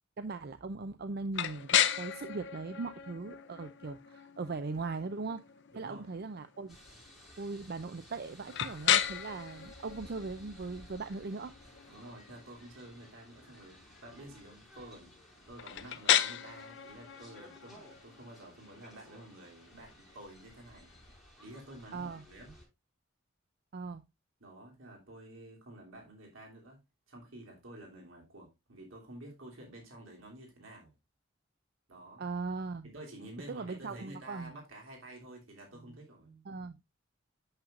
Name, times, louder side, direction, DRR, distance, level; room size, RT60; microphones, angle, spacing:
voice 1, 0.2-5.4 5.8-6.8 7.4-11.5 21.9-22.2 23.7-24.0 32.2-32.9 33.5-34.5 36.4-36.8, right 3 dB, 50° right, 0.5 m, -39 dB
sound 1, 1.3-21.1, left 10 dB, 65° left, 0.7 m, -36 dB
voice 2, 5.7-6.1 11.9-15.1 15.5-20.9 21.3-22.5 24.4-26.8 27.1-30.9 31.9-32.2 32.8-36.5, right 1 dB, 80° right, 3.1 m, -50 dB
sound 2, 6.7-22.7, equal, ahead, 5.5 m, -57 dB
8.8 x 7.2 x 2.5 m
head